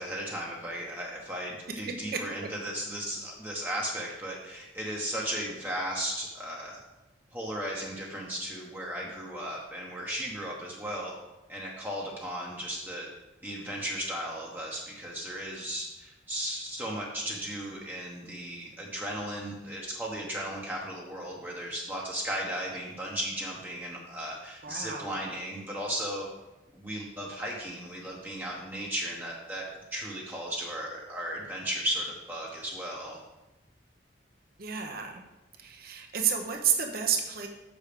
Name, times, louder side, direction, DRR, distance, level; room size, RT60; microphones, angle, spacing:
voice 1, 0.0-6.8 7.3-11.1 11.5-13.1 13.4-26.3 26.7-29.7 29.9-33.2, equal, 10° right, -3 dB, 1.0 m, -35 dB
voice 2, 24.6-25.2 34.6-35.2 35.6-37.5, right 7 dB, 55° right, 2 dB, 1.0 m, -30 dB
6.3 x 5.1 x 6.7 m, 1.0 s
head